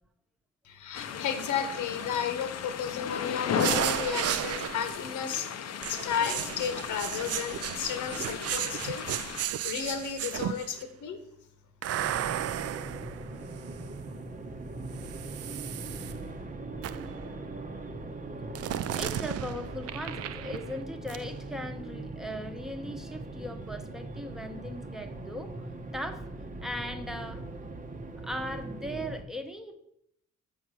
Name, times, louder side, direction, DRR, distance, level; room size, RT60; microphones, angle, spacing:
voice 1, 0.6-5.5 5.9-9.0 9.6-11.2, left 8 dB, 80° left, 8 dB, 1.2 m, -33 dB
sound 1, 0.9-9.4, left 8 dB, 55° left, 0.7 m, -36 dB
sound 2, 3.6-5.1 5.8-10.8 11.8-14.0 14.9-16.1 16.8-17.2 18.6-20.8 21.1-21.2, right 11 dB, 55° right, 0.5 m, -34 dB
sound 3, 12.0-29.2, right 2 dB, 25° right, 0.9 m, -40 dB
voice 2, 18.9-25.5 25.9-26.3 26.6-27.4 28.2-29.7, left 1 dB, ahead, 6 dB, 1.0 m, -38 dB
7.1 x 5.6 x 6.2 m, 0.75 s
cardioid pair, 90°, 30 cm